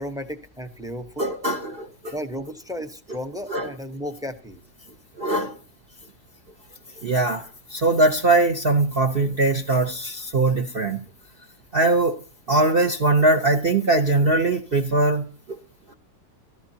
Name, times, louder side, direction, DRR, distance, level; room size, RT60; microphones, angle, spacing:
voice 1, 0.0-1.3 2.1-4.6, equal, 5° right, 0.8 m, -34 dB
voice 2, 1.2-2.2 3.5-3.7 5.1-5.6 7.0-11.0 11.7-12.2 12.5-15.6 15.9-16.0, right 2 dB, 40° right, 1.0 m, -21 dB
23.5 x 14.0 x 2.8 m
omnidirectional pair, 1.8 m